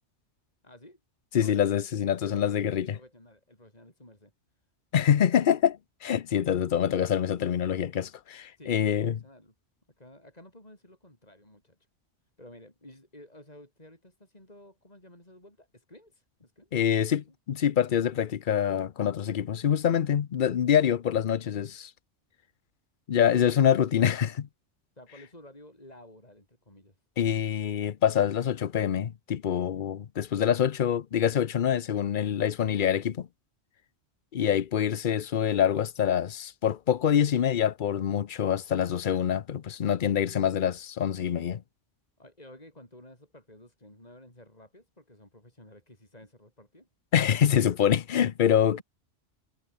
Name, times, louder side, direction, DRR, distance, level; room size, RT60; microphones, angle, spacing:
voice 1, 0.6-1.0 1.3-1.6 2.1-4.3 8.6-9.5 10.0-11.8 12.4-17.3 25.0-27.0 34.4-34.5 42.2-46.9 48.7-48.8, left 1 dB, 35° left, 6.5 m, -52 dB
voice 2, 1.3-3.0 4.9-9.2 16.7-21.9 23.1-24.5 27.2-33.3 34.3-41.6 47.1-48.8, left 9 dB, 50° left, 0.8 m, -25 dB
omnidirectional pair, 1.2 m